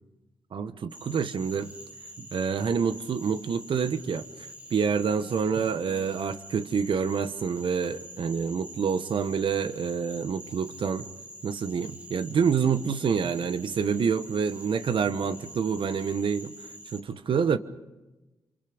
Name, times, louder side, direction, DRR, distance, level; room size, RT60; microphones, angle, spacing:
voice 1, 0.5-1.7 2.2-11.1 11.4-16.5 16.9-17.6, right 6 dB, 65° right, 11 dB, 1.3 m, -27 dB
Cricket / Frog, 0.9-17.0, right 1 dB, 15° right, 2.4 m, -46 dB
27.0 x 25.0 x 5.2 m, 1.1 s
cardioid pair, 60°, 9 cm